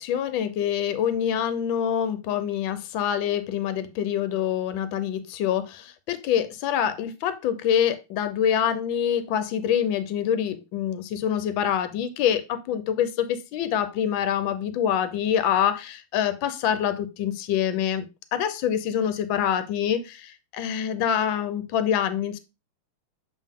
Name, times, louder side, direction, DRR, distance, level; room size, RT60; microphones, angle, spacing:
voice 1, 0.0-18.0 18.3-22.4, left 9 dB, 70° left, 12 dB, 1.4 m, -25 dB
7.4 x 3.6 x 3.6 m, 0.26 s
omnidirectional pair, 2.4 m